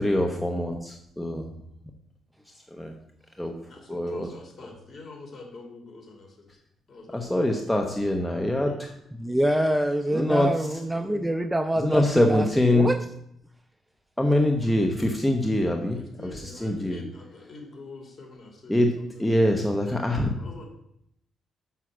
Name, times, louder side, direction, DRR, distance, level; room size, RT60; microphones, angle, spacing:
voice 1, 0.0-1.5 2.7-2.9 3.4-3.5 3.9-4.3 7.1-8.9 10.1-10.7 11.8-12.9 14.2-17.0 18.7-18.9 19.2-20.3, left 1 dB, 5° left, 3 dB, 0.8 m, -24 dB
voice 2, 3.6-6.5 6.9-7.5 8.6-8.8 15.9-20.0 20.3-20.6, left 3 dB, 40° left, 3 dB, 2.4 m, -45 dB
voice 3, 9.2-13.0, right 1 dB, 10° right, 9 dB, 0.4 m, -25 dB
6.1 x 5.7 x 6.0 m, 0.76 s
cardioid pair, 90°, 0 cm